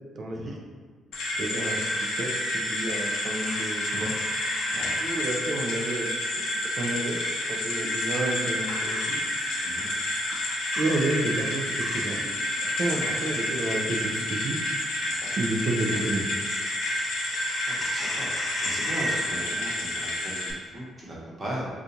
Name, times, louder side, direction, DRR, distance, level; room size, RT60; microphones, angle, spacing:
voice 1, 0.2-0.5 1.4-6.1 6.8-7.2 7.5-9.2 10.8-12.2 12.6-14.6 15.4-16.2, right 2 dB, 55° right, 1 dB, 0.5 m, -30 dB
sound 1, 1.1-20.5, left 1 dB, 85° left, 0.6 m, -30 dB
sound 2, 1.6-5.1 7.1-7.4 8.7-9.7 10.3-12.2 15.3-19.2, equal, 20° left, 0.7 m, -36 dB
voice 2, 12.9-13.2 15.2-15.3 17.7-18.3 18.6-21.7, right 1 dB, 25° right, -5 dB, 1.0 m, -37 dB
3.8 x 2.4 x 2.8 m, 1.5 s
cardioid pair, 90°, 0 cm